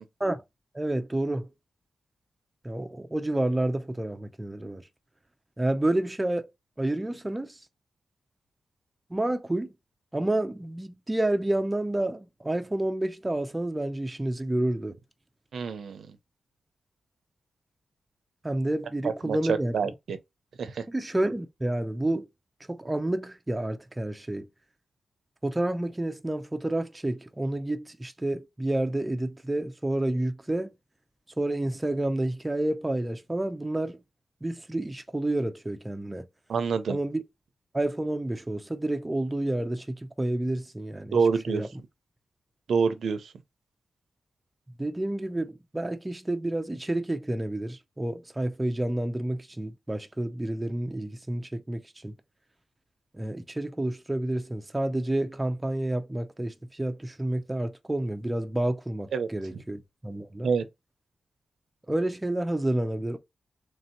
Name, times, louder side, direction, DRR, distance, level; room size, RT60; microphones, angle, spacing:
voice 1, 0.7-1.5 2.6-4.8 5.6-6.5 6.8-7.6 9.1-9.7 10.1-15.0 18.4-19.7 20.9-22.3 22.7-24.5 25.4-30.7 31.4-34.0 34.4-36.3 36.9-37.2 37.7-41.2 41.5-41.7 44.8-52.1 53.1-60.5 61.9-63.2, right 1 dB, 15° right, 0.4 m, -29 dB
voice 2, 15.5-16.1 19.0-20.2 20.6-20.8 36.5-37.0 41.1-41.6 42.7-43.3 59.1-59.3 60.4-60.6, right 5 dB, 75° right, 0.6 m, -27 dB
3.2 x 2.8 x 4.3 m
wide cardioid pair, 115°, 0 cm